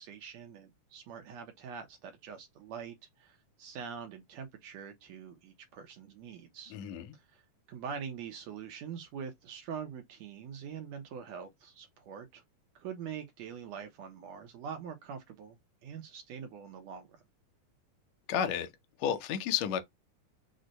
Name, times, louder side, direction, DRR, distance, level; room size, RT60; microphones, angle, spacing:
voice 1, 0.0-6.8 7.1-7.4 7.7-12.4 12.7-15.6 15.8-17.2, right 7 dB, 75° right, 1.7 m, -44 dB
voice 2, 6.7-7.1 18.3-18.7 19.0-19.8, left 9 dB, 75° left, 1.7 m, -31 dB
6.2 x 2.1 x 3.9 m
omnidirectional pair, 3.6 m